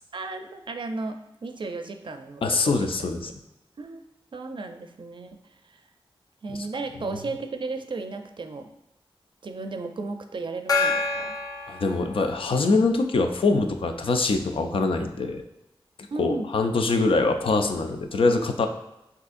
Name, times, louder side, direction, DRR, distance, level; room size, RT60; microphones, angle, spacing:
voice 1, 0.1-2.9 3.3-3.4 3.8-4.0 4.3-5.4 5.7-5.8 6.4-8.7 9.4-11.3 16.1-16.5, right 3 dB, 60° right, 6 dB, 0.5 m, -34 dB
voice 2, 2.4-3.3 6.5-6.6 7.0-7.1 11.7-15.4 16.2-18.7, left 3 dB, 70° left, 5 dB, 0.5 m, -23 dB
Gong, 10.7-12.7, left 4 dB, 40° left, 0.7 m, -28 dB
6.2 x 2.8 x 2.5 m, 0.90 s
wide cardioid pair, 70°, 9 cm